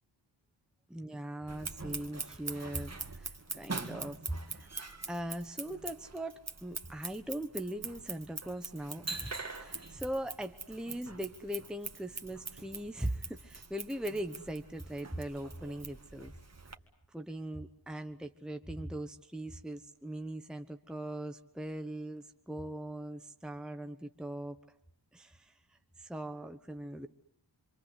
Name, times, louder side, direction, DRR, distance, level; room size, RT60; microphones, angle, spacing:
voice 1, 0.9-4.7 5.1-16.3 17.1-24.6 25.1-27.1, right 1 dB, ahead, 6 dB, 1.2 m, -40 dB
Scissors, 1.5-16.8, right 3 dB, 35° right, 2.1 m, -43 dB
26.5 x 26.5 x 8.2 m, 0.67 s
wide cardioid pair, 90°, 45 cm